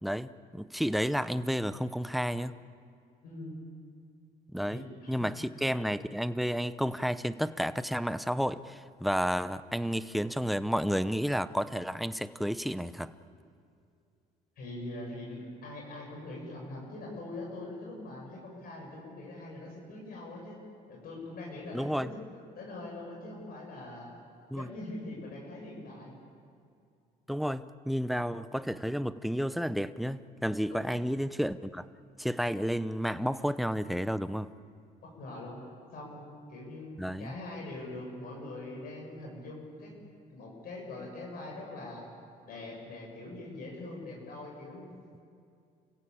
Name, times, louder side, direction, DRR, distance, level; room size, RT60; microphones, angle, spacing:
voice 1, 0.0-2.5 4.5-13.1 21.7-22.1 24.5-24.7 27.3-31.8 32.2-34.5 37.0-37.3, equal, ahead, 13 dB, 0.8 m, -31 dB
voice 2, 3.2-3.6 4.7-5.6 14.6-20.6 20.9-24.1 24.5-26.2 30.7-30.8 35.0-35.6 35.9-39.9 40.3-42.1 42.5-45.2, left 2 dB, 60° left, -2 dB, 7.6 m, -43 dB
30.0 x 16.0 x 8.8 m, 2.4 s
cardioid pair, 110°, 17 cm